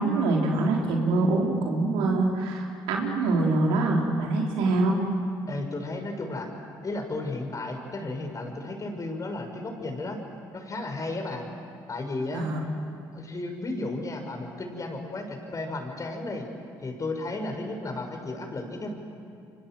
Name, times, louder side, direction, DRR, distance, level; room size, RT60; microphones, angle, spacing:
voice 1, 0.0-5.0 12.3-12.6, right 2 dB, 90° right, 0 dB, 4.2 m, -24 dB
voice 2, 5.5-6.5 6.8-10.2 10.5-11.5 11.9-12.5 13.1-16.5 16.8-18.9, left 2 dB, 40° left, 4 dB, 6.3 m, -33 dB
29.5 x 24.5 x 7.9 m, 2.3 s
supercardioid pair, 65°, 9 cm